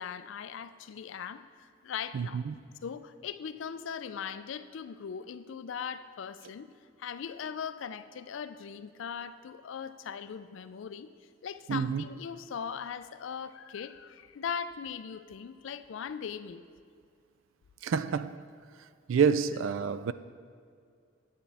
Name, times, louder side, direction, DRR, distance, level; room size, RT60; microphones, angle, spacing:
voice 1, 0.0-2.4 2.8-6.7 7.0-11.1 11.4-16.6, left 7 dB, 75° left, 0.4 m, -39 dB
voice 2, 2.1-2.5 11.7-12.0 17.8-18.4 19.1-20.1, right 6 dB, 80° right, 0.3 m, -28 dB
9.3 x 8.5 x 3.4 m
head